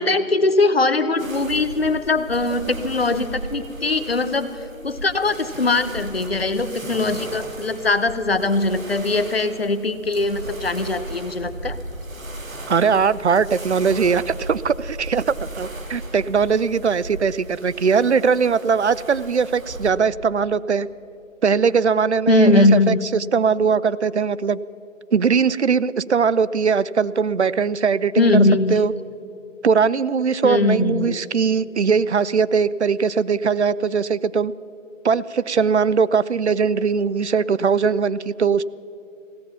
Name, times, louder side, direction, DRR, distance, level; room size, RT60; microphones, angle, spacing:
voice 1, 0.0-11.8 22.3-23.0 28.2-28.8 30.4-31.2, left 2 dB, 50° left, 11 dB, 0.8 m, -20 dB
sound 1, 1.2-19.9, right 1 dB, 80° right, 2.7 m, -36 dB
voice 2, 12.7-20.9 21.4-24.6 25.1-28.4 28.7-28.9 29.6-34.5 35.0-38.6, right 6 dB, 60° right, 18 dB, 0.5 m, -20 dB
16.0 x 14.0 x 5.7 m, 2.9 s
figure-of-eight pair, 180°, 40 cm